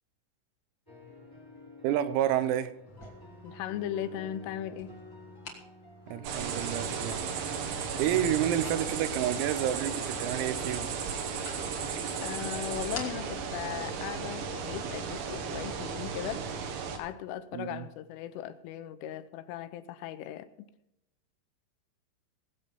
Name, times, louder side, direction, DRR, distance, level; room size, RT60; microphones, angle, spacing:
sound 1, 0.9-16.6, left 1 dB, 5° left, 2.0 m, -51 dB
voice 1, 1.8-2.7 6.1-7.5 8.0-10.9 17.5-17.8, right 11 dB, 90° right, 3.7 m, -30 dB
sound 2, 2.9-15.3, left 3 dB, 35° left, 2.1 m, -50 dB
voice 2, 3.4-4.9 12.2-16.5 16.9-20.5, left 11 dB, 80° left, 3.1 m, -38 dB
sound 3, 6.2-17.0, right 6 dB, 65° right, 3.6 m, -35 dB
20.0 x 8.2 x 5.4 m
omnidirectional pair, 6.0 m